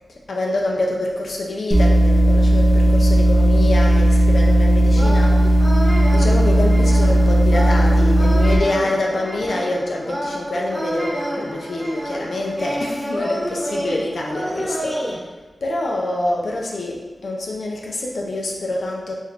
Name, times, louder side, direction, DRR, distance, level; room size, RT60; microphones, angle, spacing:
voice 1, 0.3-5.5 6.1-15.1 15.6-19.1, left 1 dB, 70° left, -1 dB, 0.4 m, -26 dB
sound 1, 1.7-8.6, right 1 dB, 70° right, 0.6 m, -15 dB
sound 2, 4.9-15.1, equal, 15° left, 1.0 m, -29 dB
3.0 x 2.4 x 3.1 m, 1.3 s
wide cardioid pair, 75°, 0 cm